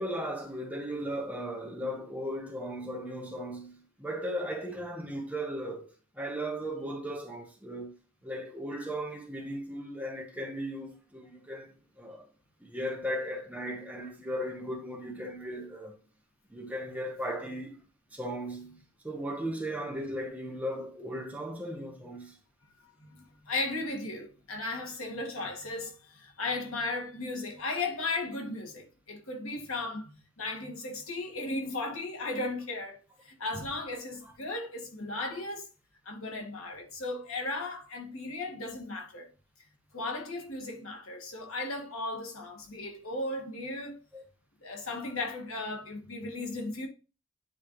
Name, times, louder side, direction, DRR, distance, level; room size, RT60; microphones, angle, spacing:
voice 1, 0.0-8.0 8.2-12.2 12.6-16.0 16.5-17.8 18.1-18.8 19.0-22.4 34.2-34.3 44.1-44.2, equal, 5° right, 1.2 m, -37 dB
voice 2, 23.0-35.7 36.1-39.3 39.9-44.0 44.6-46.9, left 2 dB, 80° left, 2.0 m, -36 dB
9.5 x 4.3 x 3.1 m
head